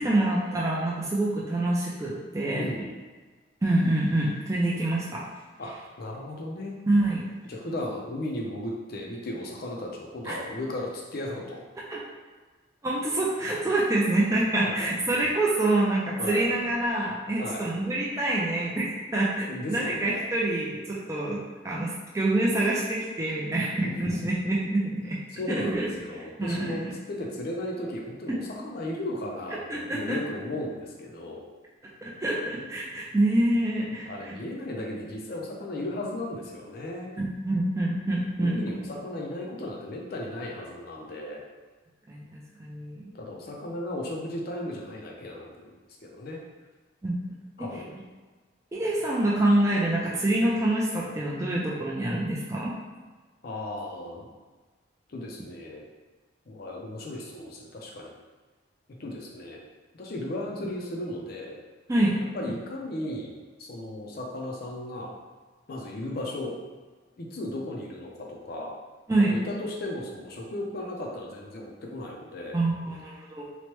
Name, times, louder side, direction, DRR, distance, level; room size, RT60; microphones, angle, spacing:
voice 1, 0.0-2.7 3.6-5.2 6.9-7.2 10.3-10.4 11.9-12.0 12.8-21.4 21.6-25.2 25.6-25.9 26.2-26.9 28.3-28.4 29.7-30.2 32.0-34.4 37.2-38.8 42.1-43.1 47.0-47.1 48.7-52.7 61.9-62.1 69.1-69.4 72.5-73.5, right 1 dB, 15° right, -5 dB, 0.3 m, -26 dB
voice 2, 2.5-3.0 5.6-6.7 7.4-11.6 14.6-14.9 16.2-16.5 17.4-17.7 19.5-20.2 23.8-24.3 25.3-26.8 27.1-31.4 34.0-37.1 38.4-41.4 43.1-45.7 46.0-46.4 47.6-47.9 53.4-54.3 55.1-55.8 56.5-58.1 59.0-59.6 60.0-61.6 62.3-63.3 63.6-65.2 65.7-66.6 67.2-68.7 69.3-72.6, left 1 dB, 50° left, -1 dB, 0.4 m, -35 dB
3.0 x 2.1 x 2.9 m, 1.4 s
head